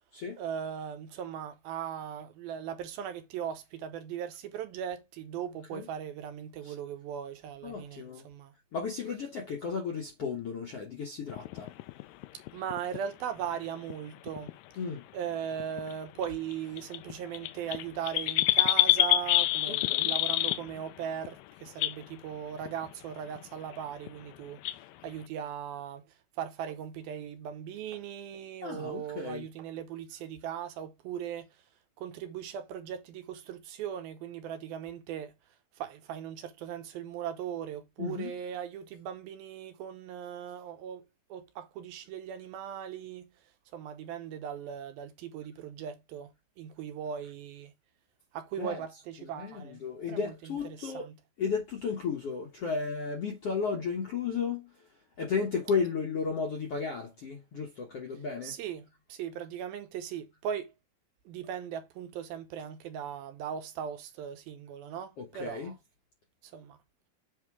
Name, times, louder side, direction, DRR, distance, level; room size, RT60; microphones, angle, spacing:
voice 1, 0.4-8.5 12.5-14.6 15.1-31.5 32.0-35.3 35.8-43.3 43.7-46.3 46.6-47.7 48.3-49.8 50.1-51.2 58.4-60.7 61.3-65.7 66.4-66.8, right 9 dB, 75° right, 2.5 m, -39 dB
voice 2, 7.6-8.2 8.7-11.7 14.8-15.0 19.7-20.1 28.6-29.4 38.0-38.4 48.6-48.8 49.2-51.1 51.4-54.9 55.2-58.5 65.2-65.7, left 5 dB, 65° left, 1.5 m, -34 dB
sound 1, 11.3-13.0 13.9-14.0 14.3-14.5 15.6-15.9 16.2-16.3 16.5-16.6 16.8-20.9 21.2-21.3 21.7-22.0 22.6-22.9 23.4-23.5 23.7-23.8 24.1-24.2 24.6-24.8, left 16 dB, 85° left, 1.9 m, -27 dB
8.0 x 4.6 x 3.6 m
omnidirectional pair, 4.5 m